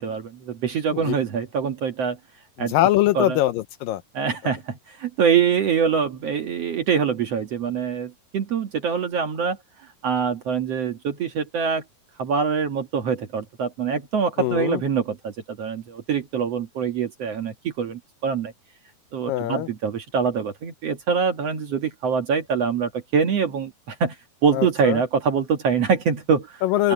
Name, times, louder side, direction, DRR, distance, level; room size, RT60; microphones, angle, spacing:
voice 1, 0.0-2.2 2.6-2.7 3.2-3.4 4.1-9.6 10.0-11.8 12.2-18.5 19.1-24.2 24.4-26.6 26.8-26.9, right 6 dB, 55° right, 2.1 m, -24 dB
voice 2, 2.6-4.0 14.4-14.8 19.3-19.7 24.5-25.0 26.6-26.9, left 15 dB, 80° left, 2.1 m, -22 dB
open air
omnidirectional pair, 4.3 m